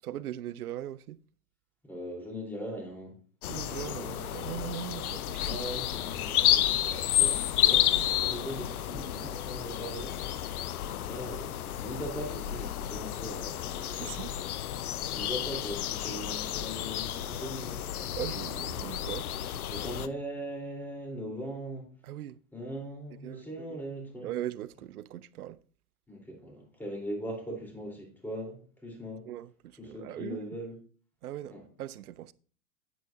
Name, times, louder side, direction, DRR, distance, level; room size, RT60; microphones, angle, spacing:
voice 1, 0.0-1.2 3.5-5.6 13.9-14.3 18.2-19.3 22.0-22.4 23.2-23.8 24.2-25.6 29.3-30.4 31.2-32.3, right 12 dB, 80° right, 0.6 m, -39 dB
voice 2, 1.8-3.2 3.7-4.1 5.4-14.1 14.4-14.5 15.1-18.2 18.7-18.8 19.7-21.9 22.5-24.3 26.1-29.3 29.8-30.8 31.5-31.6, equal, 5° left, 3.7 m, -40 dB
sound 1, 3.4-20.1, left 12 dB, 75° left, 0.7 m, -31 dB
9.3 x 9.2 x 2.7 m
hypercardioid pair, 105°, 45 cm